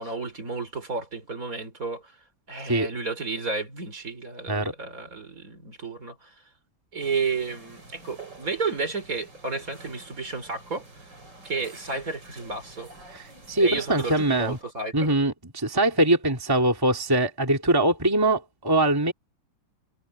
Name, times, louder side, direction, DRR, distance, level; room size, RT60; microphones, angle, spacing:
voice 1, 0.0-2.0 2.5-6.3 6.9-10.8 11.4-12.9 13.6-14.9, right 4 dB, 40° right, 4.4 m, -32 dB
sound 1, 7.0-14.6, right 3 dB, 60° right, 6.9 m, -48 dB
voice 2, 13.1-14.6 14.9-19.1, right 1 dB, 10° right, 2.3 m, -23 dB
omnidirectional pair, 2.2 m